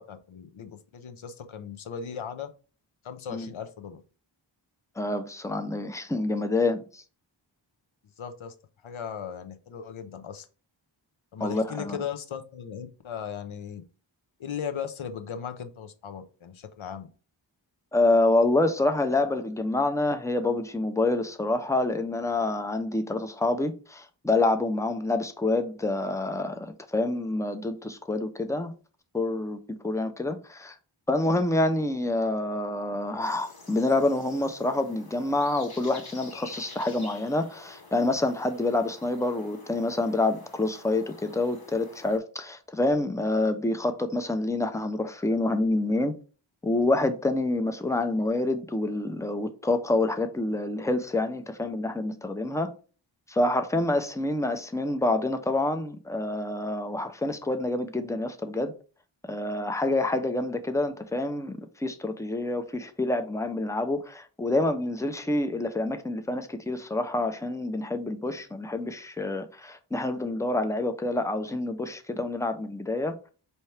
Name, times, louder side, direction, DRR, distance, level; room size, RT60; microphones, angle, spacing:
voice 1, 0.0-2.5 3.0-4.0 8.2-8.5 8.8-10.5 11.3-13.8 14.4-17.1, left 7 dB, 85° left, 0.6 m, -37 dB
voice 2, 5.0-7.0 11.4-12.0 17.9-28.7 29.1-30.8 31.1-46.1 46.6-52.7 53.3-58.7 59.3-73.1, left 2 dB, 5° left, 0.5 m, -27 dB
sound 1, 33.2-42.2, left 3 dB, 50° left, 1.0 m, -48 dB
4.4 x 2.8 x 3.2 m
wide cardioid pair, 45°, 47 cm